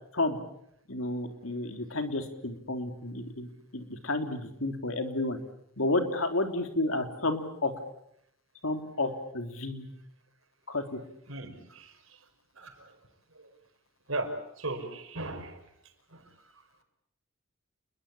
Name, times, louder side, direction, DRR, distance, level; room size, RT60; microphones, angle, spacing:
voice 1, 0.9-5.4 5.8-7.7 8.6-9.9 10.7-11.0, left 2 dB, 70° left, 6 dB, 3.6 m, -31 dB
voice 2, 11.3-11.9 12.6-12.7 14.1-14.3 14.6-15.5, right 2 dB, 70° right, 6 dB, 5.5 m, -35 dB
29.5 x 22.5 x 8.6 m, 0.74 s
head